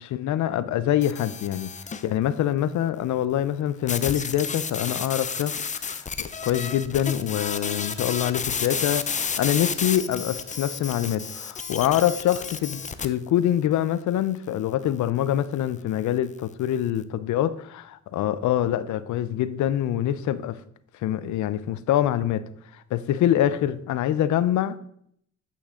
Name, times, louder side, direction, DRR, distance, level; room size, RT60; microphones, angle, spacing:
voice 1, 0.0-1.7 2.0-6.1 6.4-20.6 21.0-22.4 22.7-24.8, left 11 dB, 70° left, 0.6 m, -25 dB
sound 1, 1.0-2.1 3.9-13.1, left 6 dB, 25° left, 0.5 m, -31 dB
8.4 x 6.1 x 3.7 m
cardioid pair, 90°, 30 cm